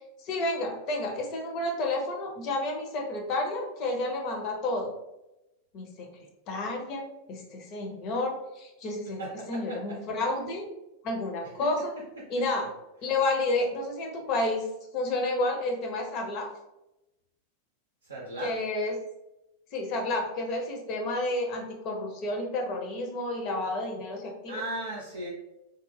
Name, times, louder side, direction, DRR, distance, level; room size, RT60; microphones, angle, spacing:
voice 1, 0.2-4.9 5.7-6.1 6.5-10.7 11.0-11.9 12.3-12.7 13.0-14.7 14.9-16.5 18.4-18.9 19.7-24.6, left 2 dB, 40° left, 1 dB, 0.6 m, -30 dB
voice 2, 9.2-10.0 18.0-18.5 24.5-25.3, right 2 dB, 70° right, -3 dB, 0.5 m, -36 dB
2.3 x 2.1 x 3.3 m, 0.93 s
figure-of-eight pair, 90°, 0 cm